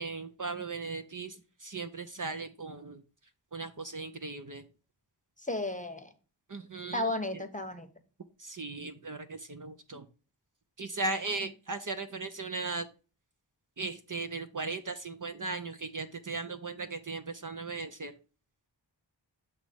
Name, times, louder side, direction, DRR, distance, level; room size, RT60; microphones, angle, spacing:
voice 1, 0.0-3.0 3.5-4.6 6.5-7.2 8.4-10.1 10.8-12.9 13.8-18.1, right 3 dB, 45° right, 9 dB, 0.6 m, -37 dB
voice 2, 5.5-6.1 6.9-7.9, left 2 dB, 15° left, 8 dB, 0.9 m, -33 dB
7.4 x 3.2 x 5.0 m, 0.35 s
wide cardioid pair, 40°, 44 cm